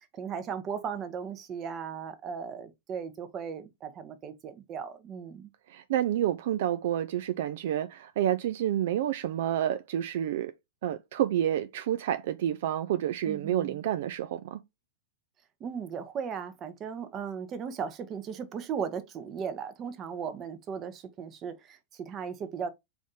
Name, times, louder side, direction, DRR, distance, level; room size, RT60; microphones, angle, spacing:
voice 1, 0.2-5.5 13.2-13.8 15.6-22.7, right 7 dB, 35° right, 0.8 m, -37 dB
voice 2, 5.7-10.5 10.8-14.6, right 11 dB, 65° right, 0.3 m, -29 dB
3.4 x 2.7 x 3.7 m
hypercardioid pair, 115°, 0 cm